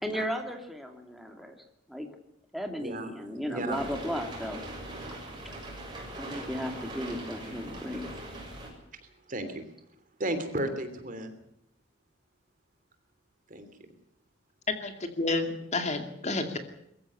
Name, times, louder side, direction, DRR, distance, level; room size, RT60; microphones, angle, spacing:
voice 1, 0.0-1.6 1.9-2.1 2.5-4.6 5.4-5.5 6.1-8.1, equal, ahead, 3 dB, 2.6 m, -35 dB
voice 2, 2.8-3.1 3.5-3.8 6.3-6.4 9.3-9.7 10.2-11.3 13.5-13.7, right 1 dB, 40° right, 8 dB, 3.1 m, -33 dB
sound 1, 3.7-8.7, right 1 dB, 20° right, 7.0 m, -41 dB
voice 3, 14.8-16.6, left 2 dB, 35° left, 6 dB, 2.3 m, -30 dB
22.5 x 15.0 x 9.8 m, 0.78 s
head